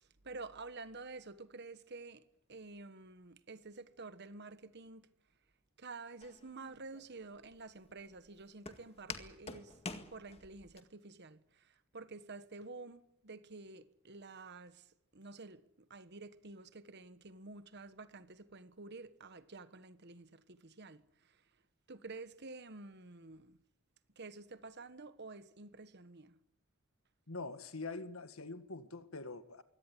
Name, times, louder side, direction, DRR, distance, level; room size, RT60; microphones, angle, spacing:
voice 1, 0.0-2.2 2.5-5.1 5.8-9.8 10.1-14.9 15.1-21.4 21.9-23.6 24.2-26.4, right 3 dB, 50° right, 1.3 m, -50 dB
Walk footsteps, 6.2-10.8, left 3 dB, 30° left, 1.9 m, -48 dB
voice 2, 27.3-29.6, left 3 dB, 80° left, 1.8 m, -44 dB
23.5 x 17.5 x 9.8 m
head